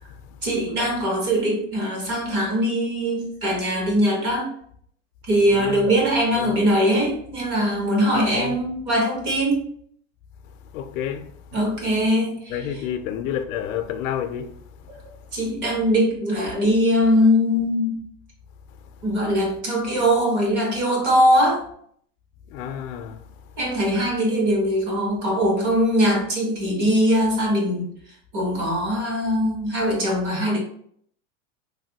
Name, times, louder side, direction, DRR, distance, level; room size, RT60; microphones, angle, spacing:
voice 1, 0.4-4.5 5.3-9.7 11.5-12.4 15.3-18.0 19.0-21.6 23.6-27.9 28.3-30.6, equal, 30° right, 0.7 m, -21 dB
voice 2, 5.5-6.0 6.3-6.6 8.1-8.6 10.7-11.3 12.5-15.0 19.0-19.1 22.5-23.3, left 9 dB, 85° left, 0.5 m, -30 dB
3.1 x 2.1 x 2.7 m
supercardioid pair, 170°, 39 cm